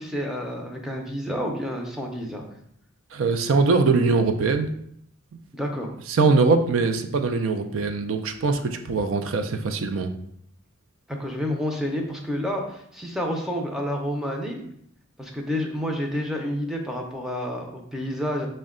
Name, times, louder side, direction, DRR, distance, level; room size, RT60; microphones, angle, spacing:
voice 1, 0.0-2.5 5.5-5.9 11.1-14.6 15.2-18.5, equal, ahead, 1 dB, 0.5 m, -29 dB
voice 2, 3.1-4.7 6.1-10.1, right 4 dB, 75° right, 7 dB, 0.4 m, -22 dB
5.2 x 2.2 x 3.6 m, 0.71 s
head